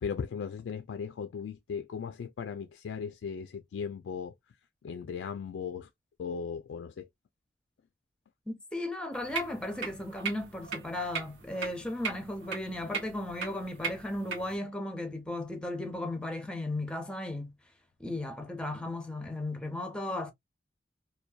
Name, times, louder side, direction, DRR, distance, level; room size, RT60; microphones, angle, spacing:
voice 1, 0.0-4.3 4.8-5.9 6.2-7.1, left 6 dB, 80° left, 0.3 m, -37 dB
voice 2, 8.5-17.6 18.0-20.3, left 1 dB, 5° left, 0.5 m, -35 dB
sound 1, 9.1-14.6, right 6 dB, 85° right, 0.9 m, -39 dB
2.7 x 2.2 x 2.2 m
head